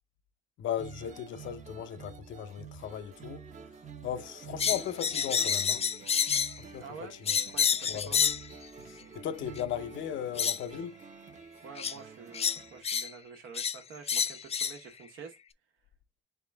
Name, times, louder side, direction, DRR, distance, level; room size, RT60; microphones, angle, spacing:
voice 1, 0.6-3.4 4.0-5.8 6.6-7.2 7.9-8.2 8.9-11.0, left 9 dB, 70° left, 0.6 m, -37 dB
sound 1, 0.8-12.8, right 5 dB, 40° right, 0.8 m, -48 dB
sound 2, 4.6-6.6 7.3-8.5 9.6-9.7 10.4-10.6 11.8-11.9 12.3-13.1 13.5-13.8 14.1-14.8, left 7 dB, 30° left, 0.4 m, -28 dB
voice 2, 6.8-7.1 7.5-8.2 11.6-15.4, right 5 dB, 85° right, 1.3 m, -47 dB
3.7 x 3.6 x 3.4 m
cardioid pair, 90°, 20 cm